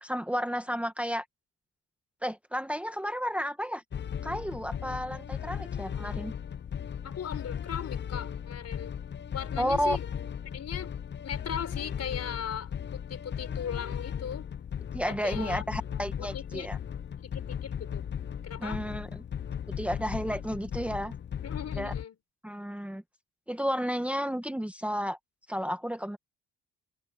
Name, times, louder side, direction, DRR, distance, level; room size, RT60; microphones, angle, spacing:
voice 1, 0.0-1.2 2.2-3.8 4.2-6.3 9.6-10.0 14.9-16.8 18.6-19.2 19.8-21.1 21.8-21.9 22.4-23.0 23.5-25.2 25.5-26.2, equal, 5° right, 1.5 m, -32 dB
sound 1, 3.9-22.0, left 8 dB, 35° left, 0.7 m, -37 dB
voice 2, 7.0-8.9 9.3-10.1 10.5-10.9 11.2-14.5 15.1-15.6 15.9-16.7 17.2-18.1 18.4-18.8 21.4-22.2, left 8 dB, 55° left, 5.7 m, -38 dB
cardioid pair, 90°, 30 cm